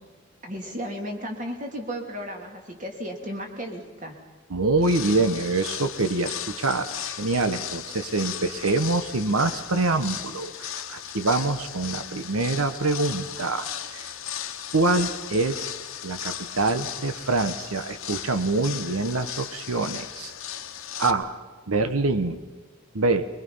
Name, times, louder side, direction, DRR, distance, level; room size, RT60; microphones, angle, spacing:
voice 1, 0.4-4.2, equal, 35° right, 2 dB, 2.6 m, -34 dB
voice 2, 4.5-13.7 13.9-14.1 14.7-15.7 16.0-20.3 21.0-21.3 21.7-22.4 22.9-23.3, right 3 dB, 85° right, 10 dB, 1.1 m, -25 dB
sound 1, 4.8-21.1, left 10 dB, 75° left, 1.2 m, -36 dB
23.0 x 22.0 x 5.6 m, 1.4 s
head